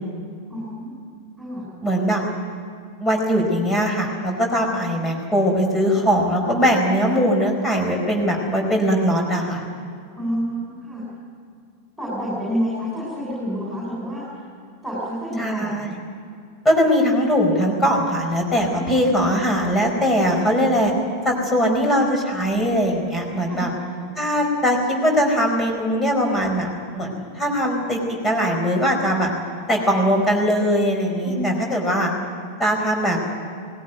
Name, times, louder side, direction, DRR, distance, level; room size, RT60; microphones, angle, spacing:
voice 1, 0.5-1.0 1.4-1.6 10.2-11.0 12.0-14.2 14.8-15.8 18.7-19.1 23.5-23.7 31.2-31.5, equal, ahead, -7 dB, 7.9 m, -28 dB
voice 2, 1.8-2.2 3.0-9.6 15.4-15.9 16.6-20.9 21.2-23.7 24.2-29.3 29.7-32.1 32.6-33.2, equal, 15° left, 1 dB, 4.9 m, -20 dB
19.0 x 17.5 x 9.4 m, 2.3 s
figure-of-eight pair, 90°, 0 cm